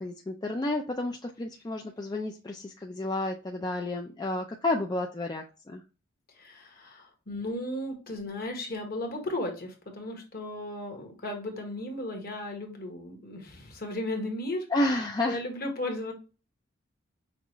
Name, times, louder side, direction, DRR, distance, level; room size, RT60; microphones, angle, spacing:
voice 1, 0.0-5.8 14.7-15.4, left 2 dB, 20° left, 2 dB, 0.4 m, -31 dB
voice 2, 6.4-14.7 15.2-16.1, left 1 dB, 45° left, 3 dB, 1.3 m, -35 dB
5.9 x 2.4 x 3.0 m, 0.31 s
head